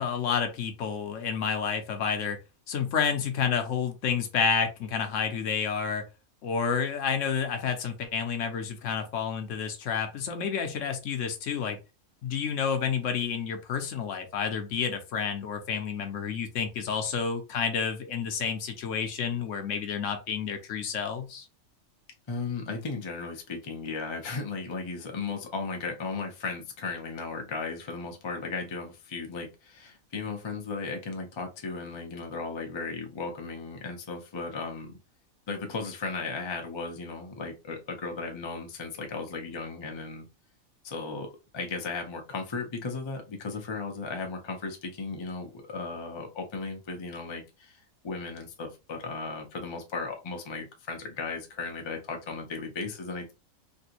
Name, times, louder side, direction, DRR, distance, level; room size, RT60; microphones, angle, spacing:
voice 1, 0.0-2.4 2.7-6.0 6.4-11.8 12.2-21.5, left 6 dB, 70° left, 6 dB, 0.9 m, -30 dB
voice 2, 22.3-35.0 35.5-40.3 40.8-41.3 41.5-53.3, left 4 dB, 40° left, 3 dB, 0.4 m, -36 dB
3.3 x 2.6 x 2.9 m, 0.29 s
omnidirectional pair, 1.5 m